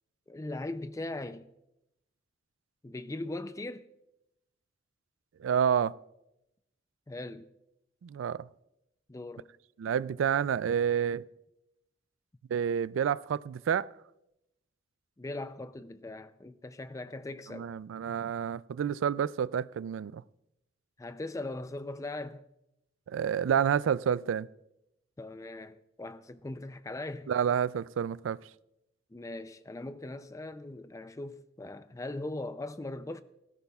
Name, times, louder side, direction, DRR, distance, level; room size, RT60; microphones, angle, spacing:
voice 1, 0.3-1.5 2.8-3.9 7.1-7.5 9.1-9.5 15.2-17.7 21.0-22.5 25.2-27.3 29.1-33.2, left 2 dB, 15° left, 0.4 m, -40 dB
voice 2, 5.4-6.0 8.0-8.5 9.8-11.2 12.5-13.9 17.5-20.2 23.1-24.5 27.3-28.4, right 8 dB, 80° right, 0.3 m, -29 dB
18.5 x 15.5 x 2.3 m
head